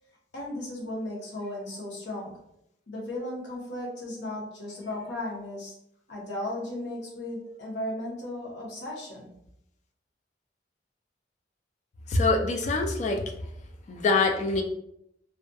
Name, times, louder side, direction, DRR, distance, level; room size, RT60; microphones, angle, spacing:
voice 1, 0.3-2.3 2.9-5.7 6.1-9.3, left 1 dB, 75° left, -3 dB, 0.9 m, -35 dB
voice 2, 12.1-13.2 13.9-14.6, left 3 dB, 40° left, 3 dB, 0.3 m, -24 dB
2.6 x 2.3 x 2.2 m, 0.76 s
head